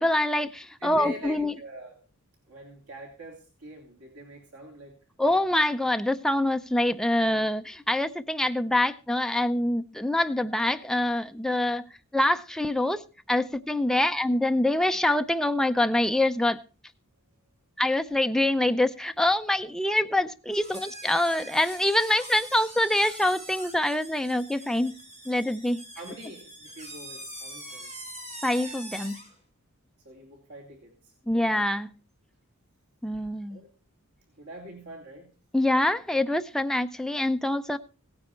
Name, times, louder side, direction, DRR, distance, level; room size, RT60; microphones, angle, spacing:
voice 1, 0.0-1.5 5.2-11.8 12.1-16.6 17.8-24.9 25.3-25.8 28.4-29.1 31.3-31.9 33.0-33.6 35.5-37.8, left 1 dB, ahead, 0.5 m, -25 dB
voice 2, 0.8-2.0 2.5-4.9 25.9-28.1 30.0-31.1 33.5-33.7 34.4-35.3, equal, 80° right, 3.1 m, -44 dB
sound 1, 20.5-29.3, right 1 dB, 30° right, 4.8 m, -43 dB
17.5 x 9.7 x 4.4 m
head